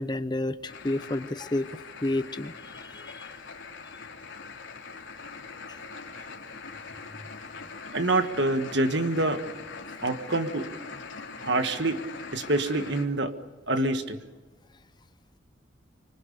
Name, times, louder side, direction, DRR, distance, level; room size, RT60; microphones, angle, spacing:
voice 1, 0.0-1.7 2.0-3.3, left 1 dB, 20° left, 12 dB, 0.8 m, -30 dB
sound 1, 0.7-13.0, left 4 dB, 70° left, 3.1 m, -42 dB
voice 2, 7.9-9.4 10.0-10.7 11.4-12.0 12.3-13.3 13.7-14.2, right 2 dB, 60° right, 8 dB, 1.6 m, -26 dB
25.5 x 24.5 x 6.9 m, 1.2 s
head